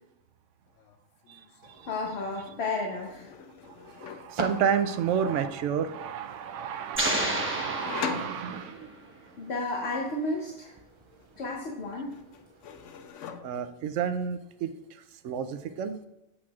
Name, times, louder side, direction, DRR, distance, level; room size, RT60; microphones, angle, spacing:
sound 1, 0.7-1.0 1.2-2.0 3.0-4.4 7.4-9.0 11.2-11.8 12.1-13.8, left 7 dB, 80° left, 1.0 m, -41 dB
voice 1, 1.3-1.9 3.8-8.9 13.4-16.1, right 7 dB, 80° right, 9 dB, 0.9 m, -31 dB
sound 2, 1.6-13.1, right 2 dB, 35° right, 0.5 m, -45 dB
voice 2, 1.8-3.3 9.4-10.7 11.4-12.1, left 2 dB, 60° left, 0 dB, 1.2 m, -32 dB
sound 3, 6.9-8.8, right 1 dB, 10° right, 1.0 m, -30 dB
8.5 x 7.3 x 2.4 m, 0.93 s
omnidirectional pair, 1.3 m